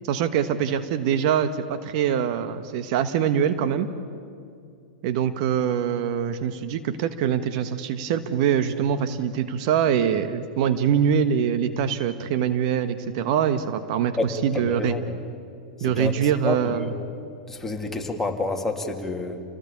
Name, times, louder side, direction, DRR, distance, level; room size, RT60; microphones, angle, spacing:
voice 1, 0.0-3.9 5.0-15.0 15.8-16.9, right 8 dB, 55° right, 10 dB, 1.3 m, -24 dB
voice 2, 14.2-15.2 15.8-16.2 16.4-16.9 17.5-19.4, left 2 dB, 10° left, 1 dB, 2.9 m, -29 dB
29.0 x 18.0 x 8.6 m, 2.4 s
hypercardioid pair, 110°, 4 cm